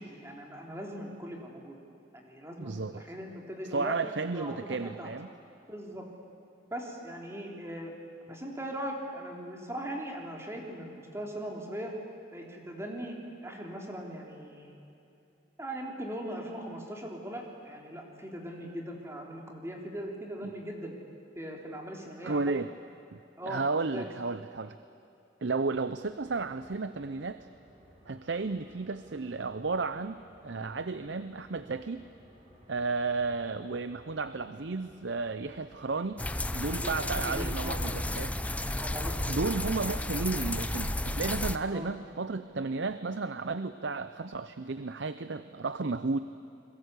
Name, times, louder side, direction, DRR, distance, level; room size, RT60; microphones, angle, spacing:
voice 1, 0.0-1.8 2.1-4.0 4.3-5.1 5.7-6.1 6.7-7.9 8.2-11.9 12.3-13.2 13.4-14.8 15.6-21.0 21.3-22.5 23.4-23.6 23.9-24.1 36.8-38.0 38.7-39.1 41.7-41.9, equal, 15° right, 0 dB, 3.4 m, -40 dB
voice 2, 2.6-3.0 3.6-5.3 20.4-20.5 22.2-22.7 23.1-23.2 23.5-24.8 25.4-27.4 28.1-30.2 30.4-32.0 32.7-36.2 36.5-38.3 39.3-46.2, right 3 dB, 65° right, 12 dB, 0.7 m, -33 dB
sound 1, 26.0-39.4, equal, 30° right, 6.0 m, -58 dB
sound 2, 36.2-41.6, left 1 dB, 5° left, 0.6 m, -32 dB
29.5 x 22.0 x 8.3 m, 2.8 s
head